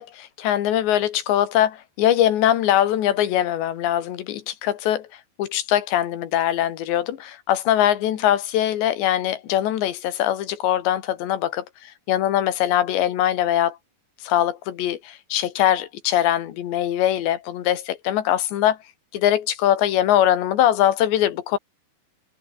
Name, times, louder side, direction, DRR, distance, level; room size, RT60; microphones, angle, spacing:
voice 1, 0.0-5.1 5.4-13.8 14.2-18.8 19.1-21.6, left 11 dB, 80° left, 4.1 m, -22 dB
omnidirectional pair, 5.0 m